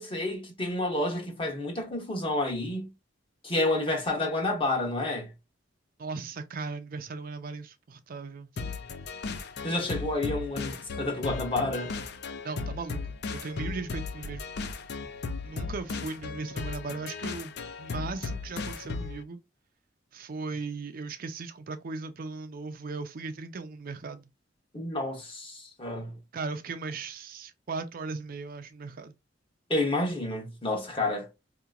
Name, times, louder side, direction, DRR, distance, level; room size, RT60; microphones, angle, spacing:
voice 1, 0.0-2.9 3.4-5.3 9.6-11.9 24.7-26.2 29.7-31.3, left 2 dB, 30° left, 1.1 m, -29 dB
voice 2, 6.0-8.5 12.4-14.4 15.4-17.5 17.8-19.4 20.1-24.3 26.3-29.1, right 4 dB, 50° right, 0.5 m, -37 dB
sound 1, 8.6-19.2, left 4 dB, 60° left, 0.5 m, -36 dB
4.2 x 2.9 x 2.3 m
head